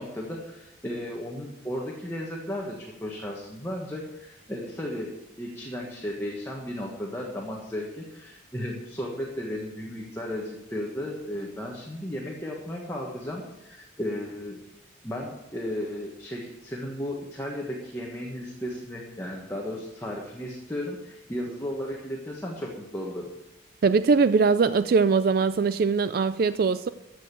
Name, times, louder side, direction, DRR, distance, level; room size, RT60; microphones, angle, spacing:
voice 1, 0.0-14.6 15.0-23.3, left 1 dB, 10° left, -2 dB, 1.4 m, -35 dB
voice 2, 23.8-26.9, right 4 dB, 50° right, 13 dB, 0.3 m, -21 dB
14.5 x 6.4 x 6.9 m, 0.92 s
head